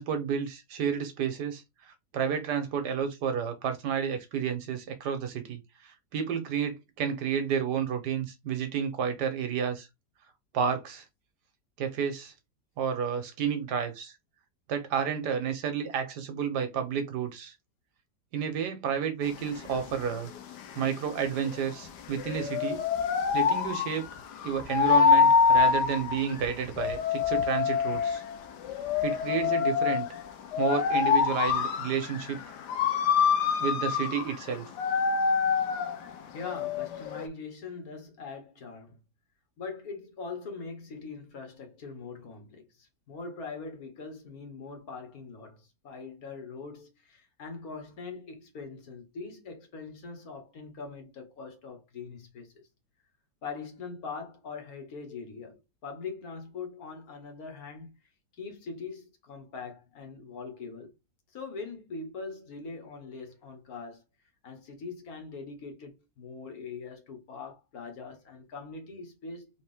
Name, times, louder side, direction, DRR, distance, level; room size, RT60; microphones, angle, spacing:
voice 1, 0.0-1.6 2.1-9.9 10.5-11.0 11.8-12.3 12.8-14.1 14.7-17.5 18.3-20.3 20.7-22.8 23.3-24.1 24.4-28.2 29.0-30.1 30.6-32.4 33.6-34.7, right 7 dB, 80° right, 1.5 m, -31 dB
sound 1, 19.2-37.3, left 6 dB, 80° left, 1.3 m, -26 dB
voice 2, 36.1-39.0 39.6-52.6 53.4-58.0 58.4-60.9 61.3-64.0 64.4-69.6, left 4 dB, 60° left, 1.6 m, -42 dB
4.2 x 2.8 x 3.5 m
omnidirectional pair, 1.8 m